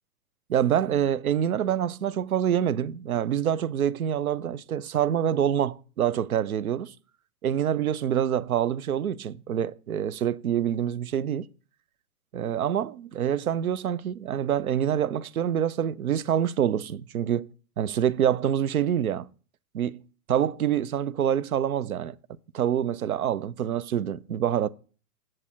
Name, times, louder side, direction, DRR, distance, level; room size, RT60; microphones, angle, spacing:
voice 1, 0.5-6.9 7.4-11.5 12.3-17.5 17.8-19.3 19.7-20.0 20.3-22.2 22.5-24.7, right 9 dB, 65° right, 0.5 m, -26 dB
7.7 x 7.6 x 4.3 m
figure-of-eight pair, 115°, 47 cm